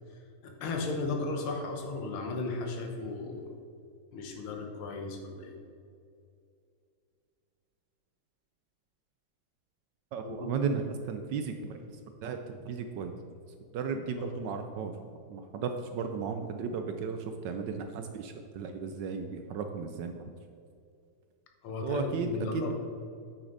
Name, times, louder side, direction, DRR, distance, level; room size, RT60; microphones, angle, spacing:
voice 1, 0.4-3.5 4.1-5.6 10.2-10.5 14.2-14.3 21.6-22.7, left 3 dB, 90° left, 2 dB, 1.9 m, -35 dB
voice 2, 10.1-10.8 11.1-11.8 12.2-13.1 13.7-14.9 15.3-20.3 21.8-22.7, right 6 dB, 75° right, 6 dB, 1.1 m, -35 dB
8.8 x 6.6 x 4.0 m, 2.4 s
omnidirectional pair, 2.3 m